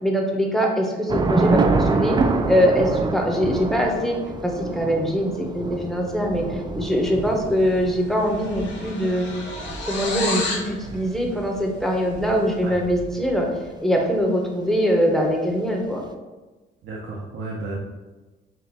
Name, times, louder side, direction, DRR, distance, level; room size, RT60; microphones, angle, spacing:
voice 1, 0.0-2.2 2.5-4.2 4.4-9.3 9.9-13.5 13.8-16.0, equal, ahead, 0 dB, 0.7 m, -22 dB
Thunder / Rain, 1.1-13.6, right 3 dB, 20° right, 0.3 m, -27 dB
sound 1, 7.5-10.7, left 3 dB, 60° left, 1.3 m, -30 dB
voice 2, 16.8-17.8, right 2 dB, 80° right, -3 dB, 0.7 m, -32 dB
5.6 x 2.4 x 2.8 m, 1.2 s
cardioid pair, 90°, 20 cm